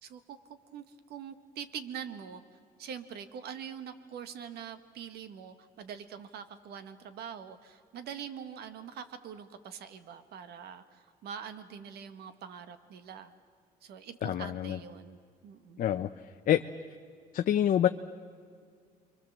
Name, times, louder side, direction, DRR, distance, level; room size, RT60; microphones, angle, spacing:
voice 1, 0.0-2.4 2.8-13.3 13.8-15.8, right 8 dB, 70° right, 10 dB, 1.8 m, -44 dB
voice 2, 14.2-14.8 15.8-16.1 16.5-16.6 17.3-17.9, left 11 dB, 55° left, 7 dB, 0.8 m, -26 dB
29.5 x 24.0 x 7.4 m, 2.1 s
cardioid pair, 110°, 17 cm